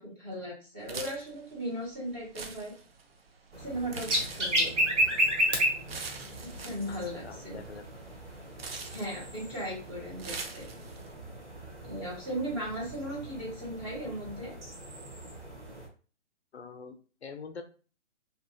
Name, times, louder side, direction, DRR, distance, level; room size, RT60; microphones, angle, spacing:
voice 1, 0.0-2.7 3.6-4.7 6.4-7.6 8.9-10.7 11.8-14.6, right 1 dB, 10° right, -9 dB, 0.5 m, -37 dB
sound 1, 0.8-11.1, right 4 dB, 55° right, 0.6 m, -45 dB
sound 2, 3.5-15.9, equal, 75° right, 1.3 m, -34 dB
voice 2, 6.9-7.8 16.5-17.6, left 5 dB, 65° left, 7 dB, 0.5 m, -45 dB
2.8 x 2.2 x 2.7 m, 0.37 s
figure-of-eight pair, 140°, 36 cm